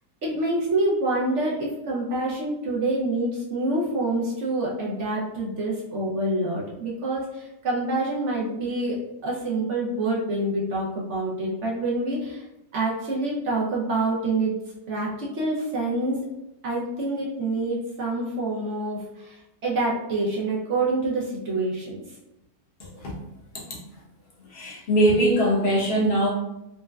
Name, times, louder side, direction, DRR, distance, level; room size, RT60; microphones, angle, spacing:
voice 1, 0.2-9.0 9.2-12.4 12.7-14.6 14.9-16.2 16.6-22.0, right 2 dB, 60° right, -4 dB, 0.8 m, -26 dB
voice 2, 22.8-23.1 23.5-23.8 24.5-26.3, right 1 dB, 45° left, -5 dB, 1.0 m, -22 dB
4.2 x 2.1 x 2.3 m, 0.90 s
omnidirectional pair, 1.7 m